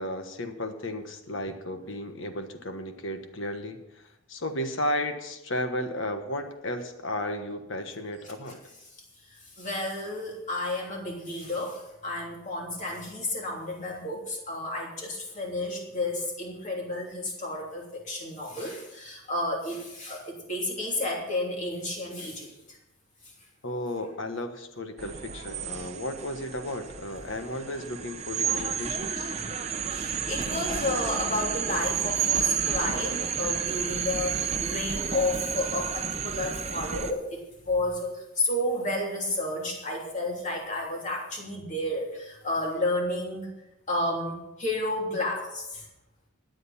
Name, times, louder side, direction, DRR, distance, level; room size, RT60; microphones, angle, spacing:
voice 1, 0.0-4.0 4.3-8.6 23.6-29.3, left 1 dB, 60° left, 7 dB, 1.3 m, -34 dB
voice 2, 9.3-22.8 29.9-43.6 43.9-45.8, left 1 dB, 35° left, -1 dB, 3.1 m, -31 dB
sound 1, 25.0-37.1, right 7 dB, 30° right, 0.8 m, -31 dB
21.0 x 7.9 x 4.3 m, 0.89 s
head